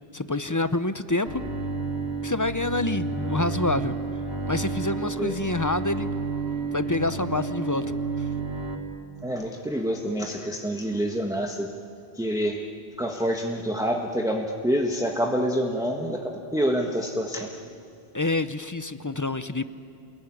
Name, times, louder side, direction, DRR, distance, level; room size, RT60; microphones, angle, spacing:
voice 1, 0.1-1.4 2.2-3.9 4.5-6.1 6.7-7.9 8.2-8.3 18.1-19.6, left 2 dB, 20° left, 12 dB, 0.6 m, -27 dB
Bowed string instrument, 1.3-8.8, right 3 dB, 80° right, 3.3 m, -31 dB
voice 2, 9.2-11.7 12.1-12.6 13.0-17.5, equal, 5° right, 1 dB, 1.4 m, -27 dB
28.5 x 20.5 x 9.8 m, 2.6 s
omnidirectional pair, 1.1 m